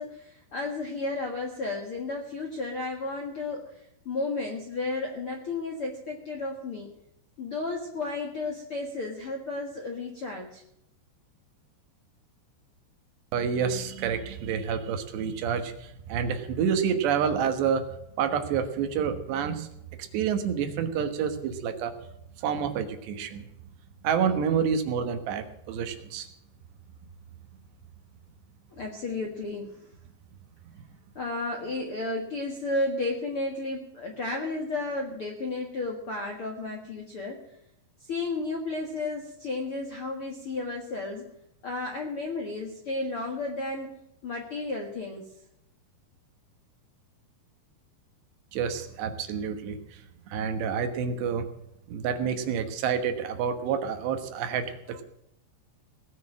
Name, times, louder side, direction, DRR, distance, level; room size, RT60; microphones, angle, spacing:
voice 1, 0.0-6.9 7.4-10.6 28.8-29.8 31.1-37.5 38.1-41.3 41.6-44.0 44.2-45.3, left 2 dB, 55° left, 1 dB, 1.5 m, -33 dB
voice 2, 13.3-17.8 18.2-19.7 20.0-22.0 22.4-23.5 24.0-26.3 48.5-50.0 50.3-51.5 51.9-55.0, right 7 dB, 75° right, 7 dB, 3.4 m, -28 dB
19.0 x 6.3 x 8.8 m, 0.79 s
omnidirectional pair, 5.0 m